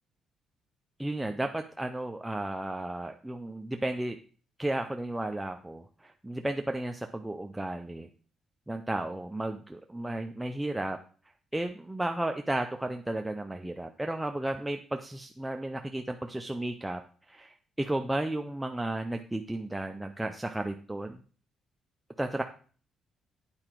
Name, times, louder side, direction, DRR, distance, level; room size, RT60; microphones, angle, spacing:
voice 1, 1.0-4.2 4.6-8.1 8.7-11.0 11.5-17.0 17.3-21.2 22.2-22.4, right 1 dB, 10° right, 5 dB, 0.5 m, -33 dB
8.8 x 4.9 x 4.5 m, 0.42 s
cardioid pair, 90°, 0 cm